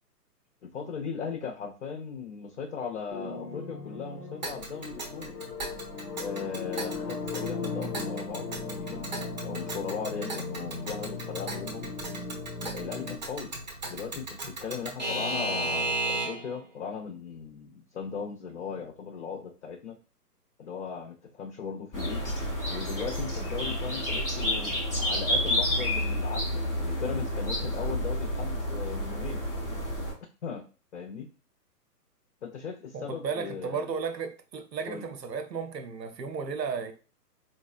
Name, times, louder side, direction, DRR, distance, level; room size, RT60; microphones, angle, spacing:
voice 1, 0.6-5.3 6.2-9.1 9.4-11.9 12.6-13.5 13.9-20.0 20.6-22.2 22.7-29.4 30.4-30.7 30.9-31.3 32.4-33.9 34.9-35.1, left 6 dB, 50° left, 0.5 m, -38 dB
sound 1, 3.1-13.2, left 4 dB, 70° left, 1.0 m, -37 dB
Alarm / Clock, 4.4-16.6, right 2 dB, 30° right, 0.5 m, -36 dB
sound 2, 21.9-30.1, equal, 10° left, 0.7 m, -30 dB
voice 2, 32.9-36.9, right 5 dB, 90° right, 0.8 m, -34 dB
4.2 x 2.7 x 2.4 m
hypercardioid pair, 145°, 48 cm